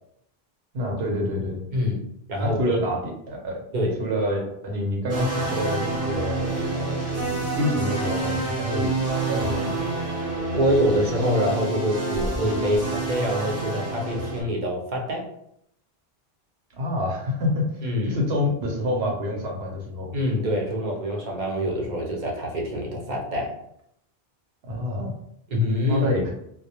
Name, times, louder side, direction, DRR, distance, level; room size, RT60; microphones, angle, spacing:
voice 1, 0.7-1.6 2.4-3.6 4.0-9.8 16.8-17.7 18.1-20.2 24.7-25.1 25.9-26.2, left 1 dB, 80° right, 0 dB, 0.9 m, -27 dB
voice 2, 1.7-2.0 2.3-2.8 3.7-4.0 10.5-15.2 17.8-18.2 20.1-23.5 25.5-26.1, equal, 55° right, -1 dB, 0.7 m, -25 dB
sound 1, 5.1-14.4, right 2 dB, 20° right, 0.5 m, -28 dB
2.2 x 2.0 x 2.8 m, 0.73 s
omnidirectional pair, 1.0 m